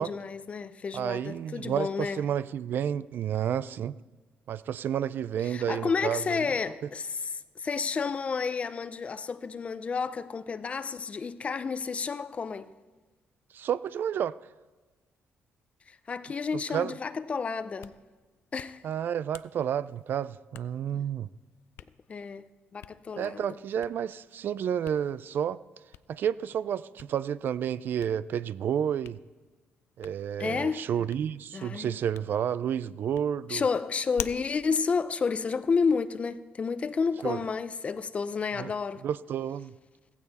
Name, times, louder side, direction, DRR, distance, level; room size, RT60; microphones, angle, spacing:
voice 1, 0.0-2.2 5.4-12.7 15.9-18.0 18.5-18.8 20.9-21.1 22.1-23.6 30.4-30.9 31.5-32.0 33.5-39.1, left 5 dB, 30° left, 0.5 m, -31 dB
voice 2, 0.9-4.0 4.5-6.4 13.5-14.4 16.7-16.9 18.8-21.3 23.2-25.6 26.1-29.2 30.0-33.6 37.2-37.4 38.6-38.7 39.0-39.7, right 9 dB, 55° right, 0.3 m, -30 dB
Hands, 17.6-36.1, left 12 dB, 80° left, 0.4 m, -50 dB
15.5 x 15.5 x 4.1 m
cardioid pair, 130°, 4 cm